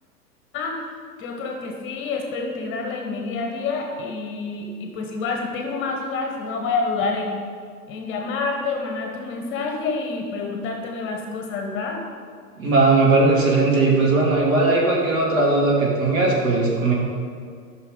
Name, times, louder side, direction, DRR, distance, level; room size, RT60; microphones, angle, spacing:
voice 1, 1.2-7.4 7.9-12.0, left 4 dB, 25° left, 2 dB, 1.2 m, -28 dB
voice 2, 12.6-16.9, right 3 dB, 55° right, -3 dB, 2.5 m, -18 dB
12.0 x 6.0 x 3.9 m, 2.1 s
figure-of-eight pair, 110°, 47 cm